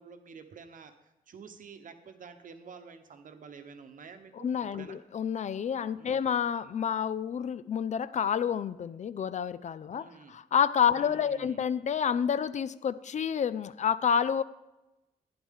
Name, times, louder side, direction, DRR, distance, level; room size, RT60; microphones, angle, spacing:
voice 1, 0.0-5.0 6.0-6.3 9.9-10.4 10.9-11.6, right 5 dB, 60° right, 8 dB, 1.0 m, -49 dB
voice 2, 4.4-14.4, left 8 dB, 50° left, 16 dB, 0.4 m, -29 dB
12.0 x 9.8 x 3.6 m, 0.99 s
wide cardioid pair, 120°, 16 cm